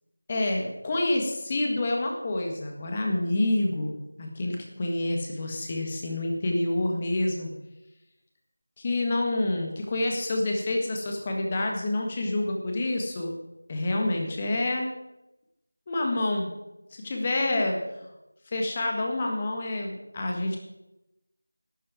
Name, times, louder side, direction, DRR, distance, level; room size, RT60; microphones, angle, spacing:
voice 1, 0.3-7.5 8.8-13.3 13.7-14.9 15.9-16.5 16.9-17.8 18.5-20.6, left 2 dB, 20° left, 1 dB, 1.7 m, -28 dB
12.0 x 8.5 x 7.7 m, 0.95 s
figure-of-eight pair, 170°, 0 cm